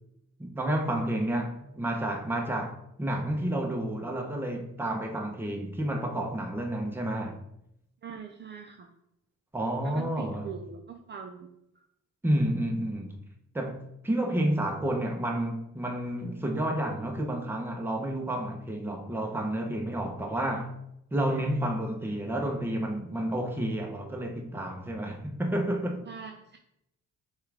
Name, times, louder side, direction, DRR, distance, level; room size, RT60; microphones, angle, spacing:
voice 1, 0.4-7.4 9.5-10.5 12.2-13.2 13.5-20.8 21.1-26.0, right 1 dB, 5° right, 0.7 m, -30 dB
voice 2, 8.0-8.9 9.8-11.5 26.1-26.6, right 7 dB, 35° right, 0.5 m, -42 dB
6.4 x 2.4 x 3.3 m
cardioid pair, 90°, 30 cm